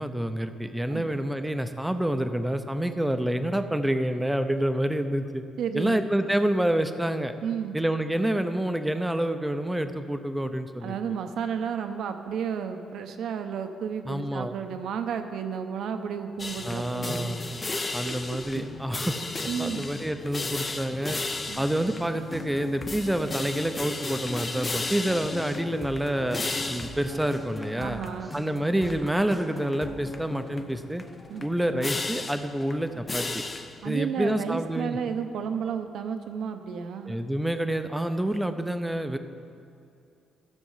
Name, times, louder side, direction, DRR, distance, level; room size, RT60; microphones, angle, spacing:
voice 1, 0.0-5.4 5.7-7.3 7.7-11.0 14.1-14.5 16.6-17.5 17.9-19.2 19.6-21.2 21.6-26.4 26.7-28.0 28.3-31.0 31.4-33.4 33.8-35.0 37.1-39.2, right 1 dB, 5° right, 8 dB, 0.7 m, -28 dB
voice 2, 5.6-6.0 7.4-7.7 10.8-17.4 18.1-18.4 19.5-19.8 21.5-21.6 27.8-28.4 31.3-31.5 33.8-37.1, right 7 dB, 75° right, 7 dB, 0.9 m, -32 dB
sound 1, 16.4-33.9, left 3 dB, 30° left, 0.7 m, -35 dB
sound 2, 22.1-30.6, left 1 dB, 10° left, 1.3 m, -40 dB
13.5 x 6.4 x 5.7 m, 2.6 s
cardioid pair, 90°, 0 cm